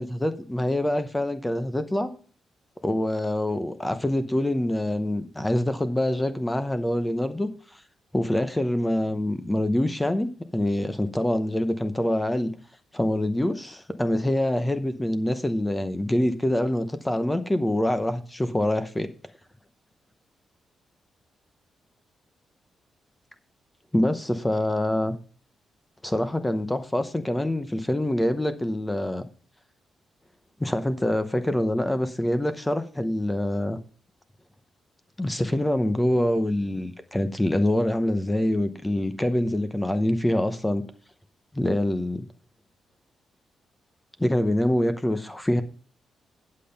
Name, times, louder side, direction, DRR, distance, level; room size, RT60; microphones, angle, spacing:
voice 1, 0.0-2.1 2.8-7.5 8.1-12.5 12.9-19.1 23.9-25.2 26.0-29.3 30.6-33.8 35.2-40.8 41.5-42.3 44.2-45.6, left 1 dB, 10° left, 0.8 m, -25 dB
8.6 x 7.6 x 5.3 m
cardioid pair, 130°, 0 cm